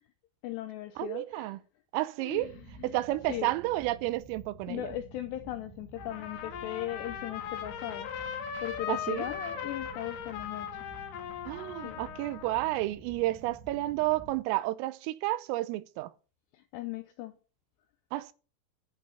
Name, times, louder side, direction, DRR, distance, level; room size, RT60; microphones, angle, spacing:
voice 1, 0.4-1.6 2.2-3.0 3.3-3.5 4.7-8.1 8.6-10.9 11.8-12.0 16.5-17.3, left 14 dB, 85° left, 2.4 m, -38 dB
voice 2, 1.0-1.6 1.9-2.6 2.8-5.0 8.9-9.3 11.5-16.1 18.1-18.3, right 17 dB, 90° right, 3.4 m, -31 dB
sound 1, 2.3-14.4, right 3 dB, 65° right, 3.8 m, -50 dB
Trumpet, 6.0-12.7, left 8 dB, 70° left, 3.8 m, -39 dB
12.0 x 6.3 x 7.3 m
omnidirectional pair, 5.8 m